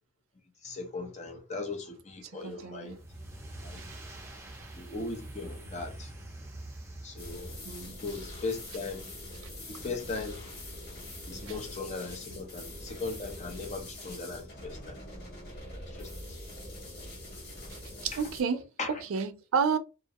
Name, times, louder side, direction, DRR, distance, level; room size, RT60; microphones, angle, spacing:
voice 1, 0.6-3.0 3.6-3.8 4.7-6.1 7.0-7.5 8.0-9.1 9.7-10.5 11.3-15.0 15.7-16.4 18.1-18.2 18.8-18.9, left 3 dB, 35° left, 0.6 m, -38 dB
voice 2, 2.4-3.0 3.8-3.9 7.6-8.0 11.5-11.6 17.7-18.7 19.1-19.8, right 6 dB, 85° right, 0.4 m, -31 dB
sound 1, 2.8-8.1, right 1 dB, 15° right, 0.6 m, -45 dB
sound 2, 7.2-18.4, left 1 dB, 50° left, 1.4 m, -44 dB
2.5 x 2.1 x 2.8 m
head